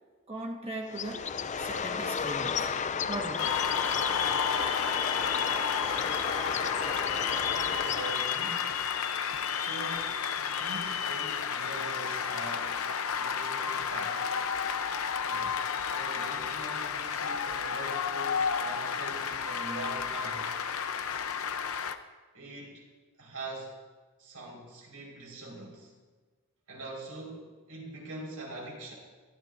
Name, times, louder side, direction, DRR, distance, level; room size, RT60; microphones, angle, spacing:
voice 1, 0.3-2.8 3.1-3.6, right 1 dB, 30° right, 1 dB, 1.4 m, -39 dB
Bird, 0.9-8.6, left 6 dB, 35° left, 0.5 m, -34 dB
Cheering / Applause, 3.4-21.9, left 7 dB, 70° left, 0.7 m, -31 dB
voice 2, 7.5-8.7 9.5-14.3 15.2-20.6 22.3-22.8 23.2-23.8 24.2-25.9 26.7-28.9, right 1 dB, 85° right, -1 dB, 4.7 m, -43 dB
21.0 x 15.0 x 2.6 m, 1.4 s
head